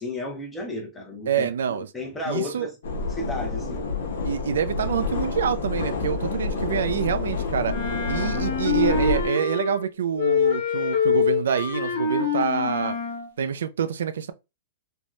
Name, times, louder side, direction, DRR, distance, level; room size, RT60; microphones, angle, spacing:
voice 1, 0.0-2.8 3.1-3.8, left 2 dB, 10° left, 0.7 m, -33 dB
voice 2, 1.3-1.9 2.3-2.7 4.2-7.8 8.1-13.0 13.4-14.3, right 8 dB, 85° right, 0.3 m, -26 dB
sound 1, 2.8-9.3, left 4 dB, 80° left, 0.8 m, -28 dB
Wind instrument woodwind instrument, 7.7-9.9 10.2-13.3, left 6 dB, 50° left, 0.8 m, -25 dB
3.3 x 2.2 x 2.5 m
hypercardioid pair, 160°, 0 cm